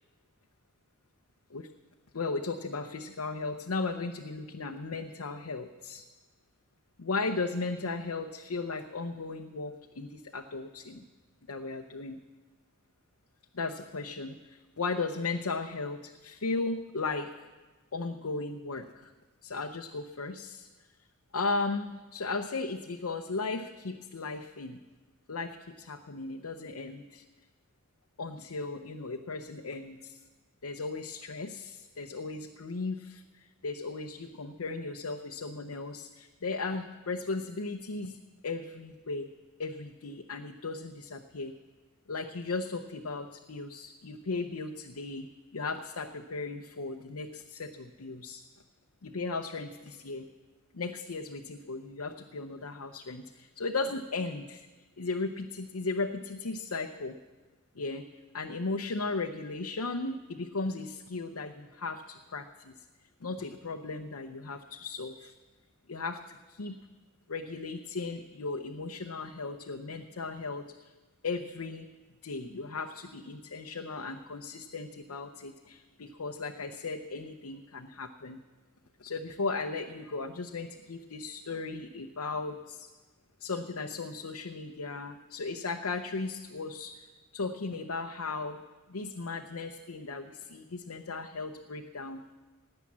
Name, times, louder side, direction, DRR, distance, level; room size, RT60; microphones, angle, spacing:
voice 1, 2.1-6.0 7.0-11.0 11.5-12.2 13.5-17.3 17.9-19.1 19.4-20.7 21.3-24.8 25.3-27.2 28.2-30.2 30.6-33.2 33.6-38.2 38.4-39.3 39.6-41.5 42.1-45.3 45.5-48.4 49.0-50.2 50.7-54.7 55.0-57.1 57.8-58.1 58.3-62.7 63.2-65.3 65.9-66.8 67.3-70.6 71.2-71.9 72.2-78.4 79.0-82.9 83.4-86.9 87.3-88.6 88.9-92.2, left 3 dB, 85° left, 4 dB, 0.7 m, -36 dB
17.5 x 9.8 x 7.3 m, 1.3 s
head